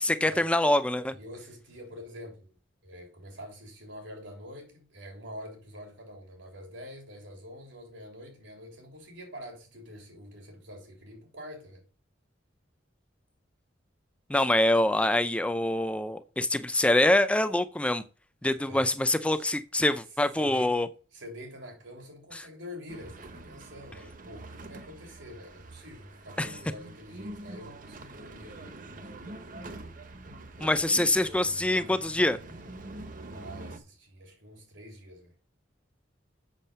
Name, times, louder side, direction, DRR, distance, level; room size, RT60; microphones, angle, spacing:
voice 1, 0.0-1.1 14.3-18.0 18.4-20.9 26.4-26.5 30.6-32.4, left 1 dB, 5° left, 0.4 m, -25 dB
voice 2, 1.1-2.6 2.8-11.9 18.7-18.9 19.3-19.5 20.4-20.8 21.1-28.8 33.3-35.4, left 1 dB, 90° right, 3.4 m, -46 dB
sound 1, 22.9-33.8, right 2 dB, 45° right, 1.0 m, -45 dB
7.4 x 6.3 x 5.5 m
head